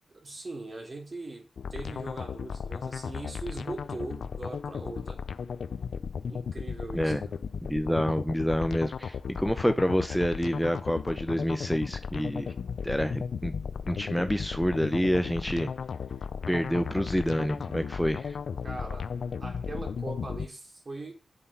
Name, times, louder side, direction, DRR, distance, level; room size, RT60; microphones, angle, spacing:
voice 1, 0.1-5.2 6.3-7.3 18.6-19.1 19.4-21.1, right 2 dB, 45° right, 3.4 m, -40 dB
sound 1, 1.6-20.5, left 6 dB, 80° left, 0.6 m, -36 dB
voice 2, 7.6-12.5 12.8-13.5 13.8-15.7 16.5-18.4, equal, ahead, 0.9 m, -28 dB
8.3 x 7.5 x 5.6 m
cardioid pair, 60°, 0 cm